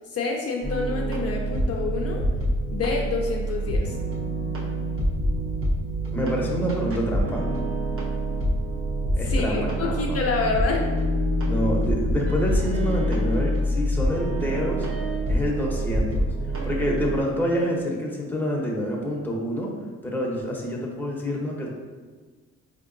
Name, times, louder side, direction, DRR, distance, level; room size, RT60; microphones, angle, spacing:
voice 1, 0.1-2.2 2.7-3.9 9.3-10.9, left 4 dB, 55° left, 0 dB, 0.5 m, -27 dB
sound 1, 0.6-17.2, equal, 45° right, 1.0 m, -26 dB
voice 2, 6.1-7.4 9.2-10.2 11.4-14.9 15.3-16.3 16.6-19.7 20.0-21.7, equal, 5° left, -3 dB, 0.8 m, -27 dB
4.3 x 2.9 x 2.5 m, 1.4 s
cardioid pair, 90°, 30 cm